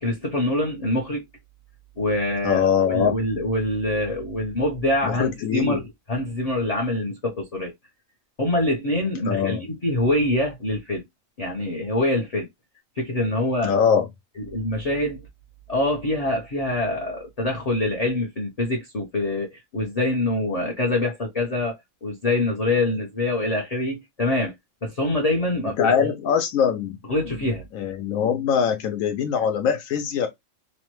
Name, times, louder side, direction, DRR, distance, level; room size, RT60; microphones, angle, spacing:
voice 1, 0.0-1.2 2.0-7.7 8.4-11.0 11.4-12.5 13.0-13.7 14.4-15.2 15.7-21.7 22.0-24.5 24.8-25.9 27.1-27.6, left 1 dB, 45° left, 0.5 m, -25 dB
voice 2, 2.4-3.2 5.0-5.8 9.3-9.6 13.6-14.1 25.8-27.0 27.3-27.4 27.7-30.3, left 7 dB, 80° left, 1.0 m, -22 dB
2.9 x 2.1 x 2.9 m
omnidirectional pair, 1.4 m